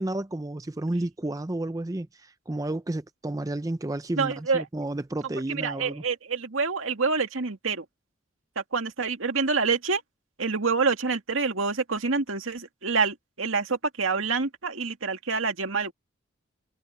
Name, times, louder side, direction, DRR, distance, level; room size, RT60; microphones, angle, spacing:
voice 1, 0.0-6.0, right 1 dB, 15° right, 0.5 m, -31 dB
voice 2, 4.2-4.7 5.5-7.9 8.6-10.0 10.4-15.9, right 4 dB, 85° right, 2.1 m, -27 dB
head